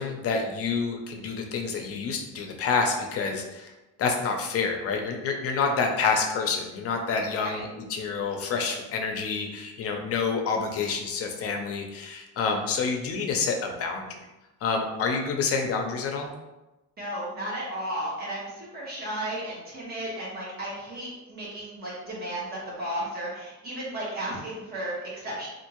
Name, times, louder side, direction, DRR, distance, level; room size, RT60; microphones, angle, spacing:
voice 1, 0.0-3.7 4.0-14.1 14.6-16.3, left 5 dB, 50° left, 3 dB, 0.5 m, -28 dB
voice 2, 17.0-25.5, right 1 dB, 30° right, -7 dB, 1.2 m, -34 dB
3.5 x 2.5 x 2.9 m, 1.0 s
cardioid pair, 175°, 30 cm